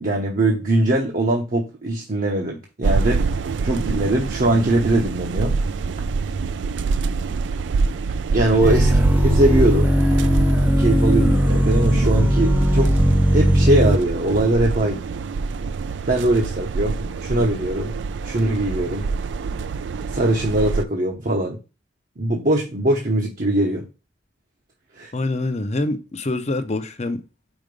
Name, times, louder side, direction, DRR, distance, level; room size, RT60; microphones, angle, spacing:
voice 1, 0.0-3.2 3.6-5.6 8.3-8.9 9.2-9.9 10.8-12.9 13.3-15.0 16.0-18.0 18.2-19.1 20.1-21.6 22.2-23.9 24.9-25.1, right 1 dB, 50° right, 0.9 m, -21 dB
sound 1, 2.8-20.8, right 4 dB, 70° right, 0.4 m, -26 dB
sound 2, 8.6-14.0, equal, 10° right, 0.5 m, -18 dB
voice 2, 25.1-27.2, left 2 dB, 35° left, 0.6 m, -25 dB
5.1 x 4.3 x 5.2 m
head